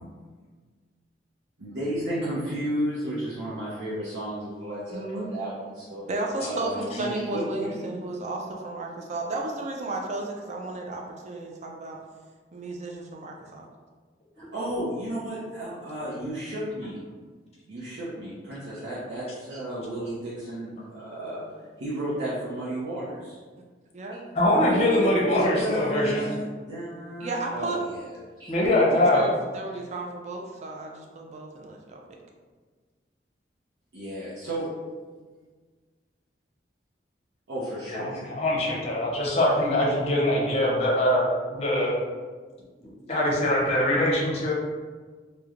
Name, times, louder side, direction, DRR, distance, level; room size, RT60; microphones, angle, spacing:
voice 1, 1.6-6.0 6.4-7.9 14.4-17.0 17.7-21.4 21.8-23.4 24.1-24.2 24.5-24.7 25.0-28.1 28.4-28.5 33.9-34.7 37.5-38.2, right 1 dB, 85° right, -10 dB, 0.6 m, -33 dB
voice 2, 4.9-5.3 6.1-12.0 12.5-13.7 23.9-24.3 27.2-27.8 28.9-32.0, right 2 dB, 40° right, 1 dB, 0.4 m, -33 dB
voice 3, 24.3-26.3 28.5-29.3 37.9-41.9 43.1-44.5, left 1 dB, 35° left, -3 dB, 0.6 m, -23 dB
3.0 x 2.1 x 2.4 m, 1.5 s
head